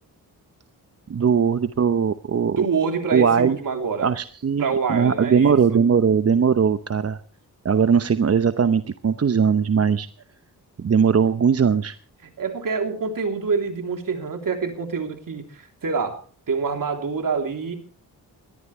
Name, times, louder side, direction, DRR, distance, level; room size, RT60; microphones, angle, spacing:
voice 1, 1.1-2.7 3.1-3.6 4.0-7.2 7.6-10.1 10.8-11.9, right 6 dB, 40° right, 11 dB, 0.8 m, -19 dB
voice 2, 2.6-4.1 4.6-5.6 12.4-16.2 16.5-17.8, right 5 dB, 55° right, 5 dB, 3.3 m, -26 dB
21.0 x 13.5 x 3.2 m, 0.43 s
cardioid pair, 70°, 38 cm